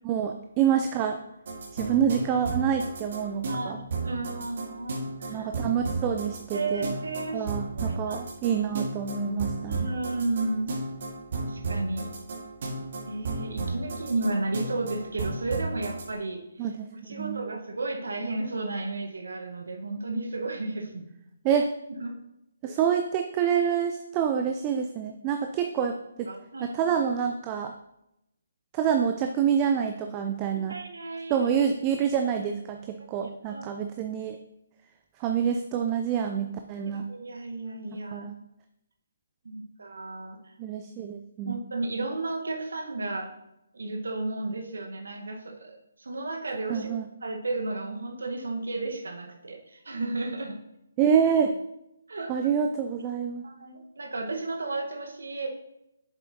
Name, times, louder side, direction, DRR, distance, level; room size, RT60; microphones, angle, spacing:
voice 1, 0.0-1.2 1.7-3.8 5.3-6.9 7.3-9.9 16.6-17.5 21.4-21.7 22.6-26.3 26.6-27.7 28.7-30.7 31.3-34.4 35.2-37.1 38.1-38.3 40.6-41.6 46.7-47.1 51.0-51.6 52.3-53.4, right 8 dB, 25° right, 5 dB, 0.4 m, -27 dB
sound 1, 1.5-16.1, right 3 dB, 50° right, 1.7 m, -34 dB
voice 2, 3.5-3.8 4.0-5.5 6.5-7.5 7.9-8.2 9.7-10.7 11.4-12.1 13.1-16.7 16.9-21.1 21.5-21.6 22.0-22.1 22.6-22.7 26.3-26.7 30.7-31.5 33.2-33.7 36.8-38.3 39.4-40.5 41.4-43.3 43.7-47.0 47.2-50.6 52.1-52.3 53.4-55.5, right 2 dB, 70° right, 3 dB, 1.2 m, -33 dB
7.6 x 7.0 x 2.8 m, 0.85 s
figure-of-eight pair, 140°, 0 cm